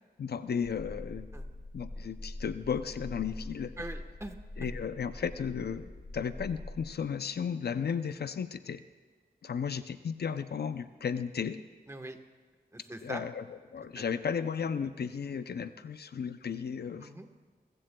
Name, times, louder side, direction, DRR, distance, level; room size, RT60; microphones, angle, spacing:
voice 1, 0.2-1.3 1.7-3.7 4.6-8.8 9.4-11.6 13.0-17.1, left 7 dB, 75° left, 11 dB, 0.5 m, -34 dB
sound 1, 0.6-7.2, left 1 dB, 50° left, 1.6 m, -44 dB
voice 2, 3.8-4.7 11.9-12.2 12.7-13.2 14.0-14.1 17.0-17.3, right 1 dB, 15° right, 5 dB, 1.1 m, -42 dB
27.0 x 15.0 x 2.3 m, 1.4 s
wide cardioid pair, 95°, 17 cm